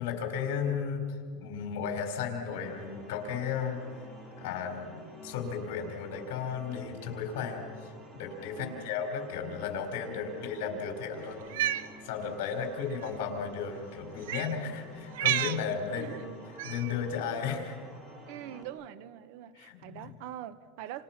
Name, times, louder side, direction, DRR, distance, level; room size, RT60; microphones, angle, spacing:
voice 1, 0.0-3.8 4.4-16.2 16.6-17.8 19.5-20.1, left 6 dB, 70° left, 4 dB, 4.6 m, -35 dB
sound 1, 2.5-18.6, right 1 dB, 20° right, 4.0 m, -51 dB
voice 2, 8.6-8.9 15.9-16.3 18.3-21.0, right 12 dB, 60° right, 15 dB, 1.0 m, -43 dB
Cat, 11.4-11.9 12.9-13.1 14.2-14.5 15.1-15.6 16.6-16.9, right 13 dB, 85° right, 0.8 m, -30 dB
28.5 x 28.5 x 6.0 m, 2.1 s
supercardioid pair, 160°, 0 cm